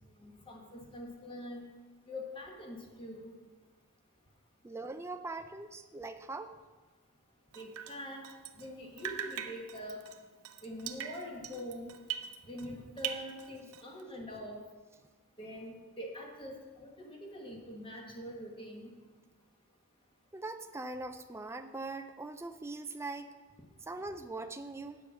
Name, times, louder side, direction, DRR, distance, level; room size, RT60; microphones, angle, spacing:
voice 1, 0.2-1.7 2.1-3.3 7.5-8.2 8.6-10.0 10.6-11.9 12.4-14.6 15.4-18.9, equal, 25° left, 0 dB, 1.2 m, -44 dB
voice 2, 4.6-6.6 20.3-23.3 23.8-25.0, right 3 dB, 10° right, 8 dB, 0.3 m, -41 dB
Drip, 7.5-8.7 9.0-12.7 13.0-14.0, right 9 dB, 80° right, 0.6 m, -42 dB
8.8 x 6.8 x 6.2 m, 1.3 s
head